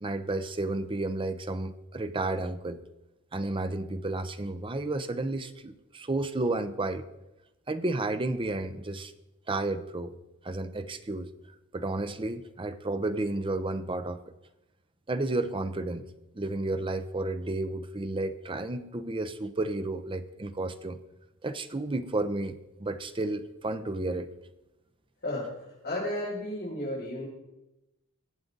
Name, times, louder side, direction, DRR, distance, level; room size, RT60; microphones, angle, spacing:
voice 1, 0.0-2.8 3.3-7.0 7.7-9.1 9.5-10.1 10.4-11.3 11.7-14.3 15.1-16.1 16.3-21.0 21.4-24.3, right 2 dB, 25° right, 10 dB, 0.7 m, -32 dB
voice 2, 25.8-27.2, left 1 dB, 50° left, -7 dB, 5.8 m, -32 dB
22.5 x 7.7 x 3.9 m, 0.98 s
head